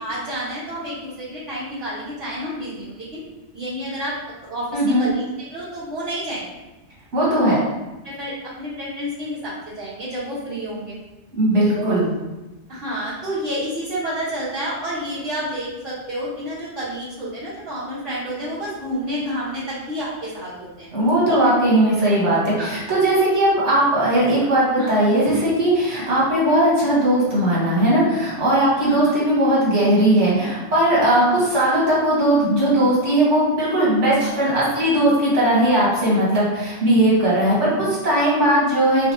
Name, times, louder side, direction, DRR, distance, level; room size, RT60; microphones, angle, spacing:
voice 1, 0.0-3.2 3.5-4.2 4.4-6.5 7.4-7.6 8.0-11.0 11.7-12.0 12.7-20.9 21.3-21.4 22.6-22.7 24.8-24.9 28.8-29.1 31.2-31.4 34.2-34.4 37.6-37.9, equal, 55° right, -14 dB, 1.6 m, -30 dB
voice 2, 4.7-5.1 7.1-7.5 11.3-12.1 20.9-39.1, right 1 dB, 80° right, -7 dB, 1.7 m, -18 dB
5.1 x 2.4 x 2.9 m, 1.1 s
omnidirectional pair, 1.2 m